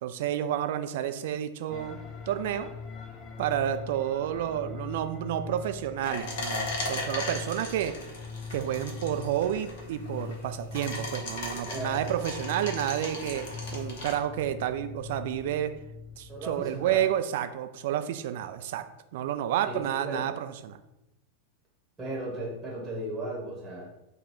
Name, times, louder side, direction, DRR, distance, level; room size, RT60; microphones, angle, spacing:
voice 1, 0.0-2.0 2.3-2.7 3.4-8.0 8.5-15.7 16.2-18.8 19.1-20.8, right 11 dB, 55° right, 9 dB, 0.3 m, -30 dB
sound 1, 1.7-17.0, left 4 dB, 30° left, 0.5 m, -42 dB
sound 2, 6.0-14.1, left 2 dB, 50° left, 1.0 m, -37 dB
voice 2, 16.3-17.0 19.6-20.3 22.0-23.9, right 1 dB, 10° right, -4 dB, 1.1 m, -36 dB
4.0 x 2.3 x 4.6 m, 0.92 s
figure-of-eight pair, 90°, 0 cm